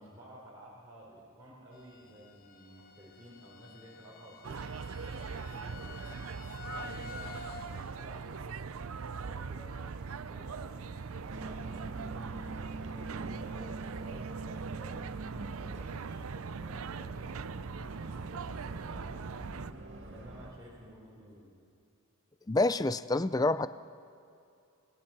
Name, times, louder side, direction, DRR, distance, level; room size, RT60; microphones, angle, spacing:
voice 1, 0.0-6.1 6.5-8.8 9.1-19.2 19.8-21.5, equal, 15° right, -8 dB, 4.2 m, -53 dB
sound 1, 1.7-12.4 12.7-13.2 13.6-13.7 14.1-14.2, left 4 dB, 40° left, 0.9 m, -51 dB
sound 2, 4.4-19.7, right 5 dB, 75° right, 0.5 m, -41 dB
sound 3, 11.3-20.5, right 2 dB, 55° right, 2.5 m, -45 dB
voice 2, 22.5-23.7, left 2 dB, 15° left, 14 dB, 0.4 m, -27 dB
26.5 x 18.5 x 6.1 m, 2.6 s
head